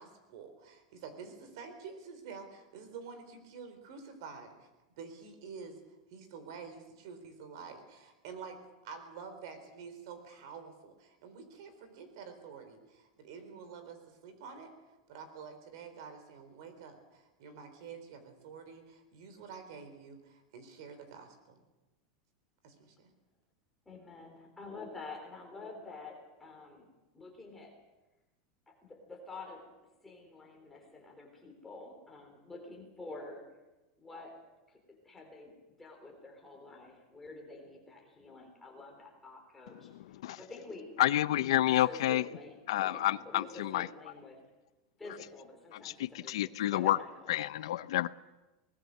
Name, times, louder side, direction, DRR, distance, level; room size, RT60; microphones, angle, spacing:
voice 1, 0.0-4.7 5.0-5.8 6.1-8.6 8.8-21.6 22.6-23.1, right 5 dB, 55° right, 4.0 m, -48 dB
voice 2, 23.9-26.9 27.1-27.7 28.7-29.7 30.0-33.5 34.0-34.4 34.7-34.8 35.0-39.9 40.3-40.9 41.4-44.4 45.0-47.3, left 3 dB, 5° left, 3.6 m, -48 dB
voice 3, 41.0-42.2 42.7-43.9 45.8-47.0 47.3-48.1, left 14 dB, 75° left, 0.6 m, -29 dB
24.0 x 19.5 x 6.6 m
supercardioid pair, 180°, 3 cm